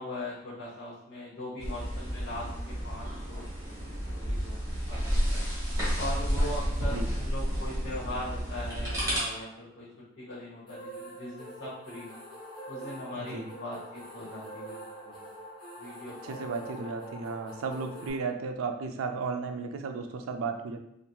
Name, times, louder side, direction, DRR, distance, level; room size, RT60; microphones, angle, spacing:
voice 1, 0.0-3.4 4.0-4.6 4.9-5.4 6.0-9.9 10.2-12.2 12.7-15.1 15.8-16.4, left 1 dB, 70° left, -8 dB, 0.8 m, -40 dB
sound 1, 1.6-9.2, equal, 15° right, 0.9 m, -31 dB
sound 2, 10.7-18.1, right 1 dB, 25° left, 0.5 m, -44 dB
voice 2, 13.1-13.5 16.1-20.8, right 4 dB, 85° right, 5 dB, 0.3 m, -34 dB
2.9 x 2.5 x 2.2 m, 0.80 s
head